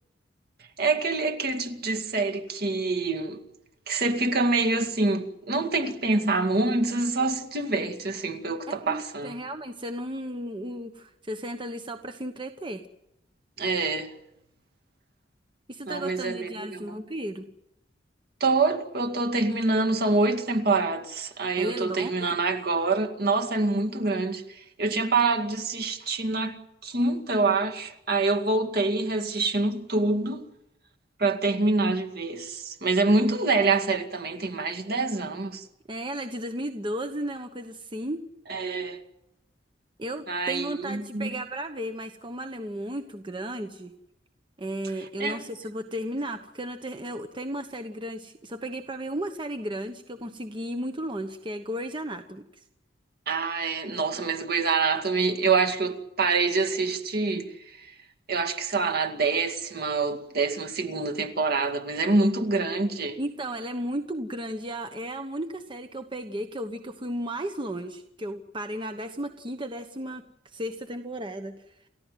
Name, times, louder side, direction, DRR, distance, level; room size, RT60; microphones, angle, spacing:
voice 1, 0.8-3.4 3.9-9.4 13.6-14.1 15.9-17.0 18.4-26.6 26.8-30.5 31.2-35.6 38.5-39.0 40.3-41.3 45.2-45.4 53.3-57.5 58.3-63.2, right 3 dB, 60° right, 2.2 m, -26 dB
voice 2, 8.7-12.9 15.7-17.5 21.6-22.4 35.9-38.2 40.0-43.9 44.6-52.6 63.2-71.7, right 1 dB, 25° right, 1.1 m, -34 dB
29.5 x 15.0 x 9.3 m
head